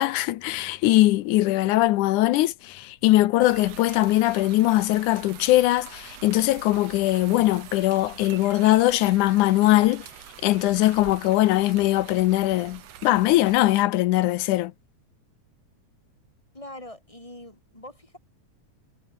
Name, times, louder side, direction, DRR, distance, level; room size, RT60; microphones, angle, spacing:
voice 1, 0.0-10.1 10.4-14.7, left 16 dB, 85° left, 2.2 m, -21 dB
sound 1, 3.4-13.8, right 11 dB, 60° right, 2.3 m, -44 dB
voice 2, 16.5-18.2, left 1 dB, 10° left, 7.2 m, -43 dB
omnidirectional pair, 3.5 m